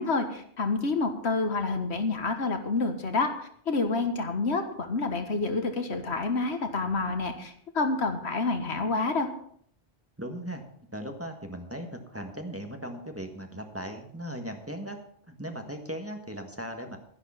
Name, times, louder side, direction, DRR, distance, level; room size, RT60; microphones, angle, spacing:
voice 1, 0.0-3.3 3.7-9.3, left 3 dB, 80° left, 7 dB, 1.7 m, -28 dB
voice 2, 10.2-10.6 10.9-15.0 15.3-17.0, right 1 dB, 15° right, 4 dB, 1.5 m, -38 dB
11.5 x 11.0 x 5.7 m, 0.64 s
omnidirectional pair, 1.1 m